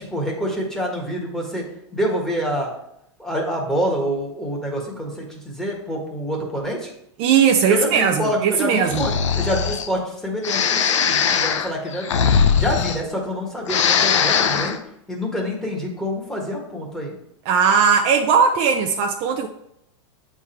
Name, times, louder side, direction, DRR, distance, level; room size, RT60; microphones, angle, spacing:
voice 1, 0.0-1.6 1.9-2.7 3.2-6.9 7.7-12.1 12.6-14.8 15.1-17.1, equal, 5° left, -2 dB, 1.6 m, -26 dB
voice 2, 7.2-9.1 17.5-19.5, right 6 dB, 40° right, 4 dB, 0.6 m, -18 dB
Breathing, 8.9-9.9 10.4-13.4 13.6-14.8, left 7 dB, 85° left, 0.6 m, -20 dB
8.1 x 3.7 x 4.5 m, 0.78 s
hypercardioid pair, 135°, 15 cm